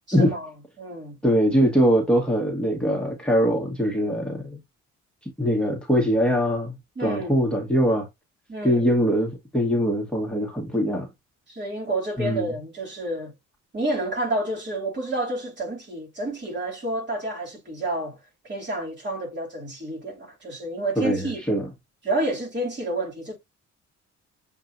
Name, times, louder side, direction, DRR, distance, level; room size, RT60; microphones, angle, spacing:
voice 1, 0.1-0.5 0.8-1.2 7.0-7.4 8.5-8.9 11.5-13.3 13.7-18.2 18.4-21.4 22.0-23.4, right 2 dB, 35° right, 2.9 m, -29 dB
voice 2, 1.2-4.6 5.2-6.8 7.0-8.1 8.6-11.1 12.2-12.5 21.0-21.7, equal, 5° left, 1.5 m, -22 dB
7.3 x 2.7 x 2.7 m
cardioid pair, 90°, 30 cm